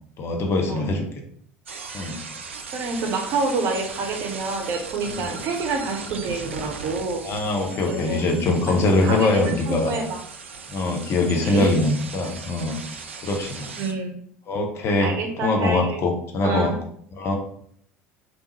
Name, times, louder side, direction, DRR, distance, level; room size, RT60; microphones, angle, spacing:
voice 1, 0.2-1.0 1.9-2.2 5.1-5.3 7.2-9.9 10.7-12.7 13.2-13.7 14.5-15.1 15.4-16.7 17.2-17.3, left 2 dB, 40° left, 3 dB, 0.7 m, -22 dB
sound 1, 1.7-13.9, right 5 dB, 80° right, 0.3 m, -38 dB
voice 2, 2.7-7.2 7.9-8.2 9.0-10.2 10.8-10.9 11.4-11.7 13.8-14.2 15.0-16.0 16.4-16.7, right 3 dB, 50° right, 4 dB, 0.7 m, -27 dB
3.4 x 2.6 x 3.1 m, 0.64 s
figure-of-eight pair, 65°, 6 cm